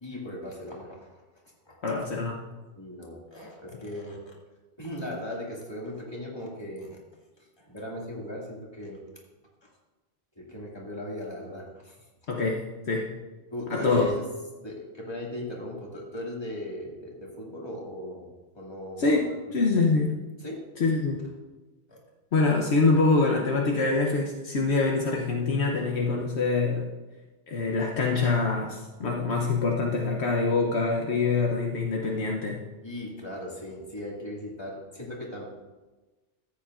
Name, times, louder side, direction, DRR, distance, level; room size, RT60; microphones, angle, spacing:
voice 1, 0.0-1.2 1.7-1.8 2.7-4.3 4.8-7.0 7.4-9.0 9.6-9.7 10.4-12.0 13.5-14.2 14.6-18.3 18.5-19.1 19.6-19.9 20.4-20.6 21.9-22.0 32.8-35.4, left 1 dB, 20° left, -3 dB, 2.2 m, -38 dB
voice 2, 1.8-2.4 12.3-13.1 13.7-14.1 19.0-20.1 20.8-21.3 22.3-26.9 27.5-32.6, left 3 dB, 65° left, -1 dB, 1.1 m, -25 dB
14.5 x 8.5 x 2.5 m, 1.2 s
omnidirectional pair, 1.2 m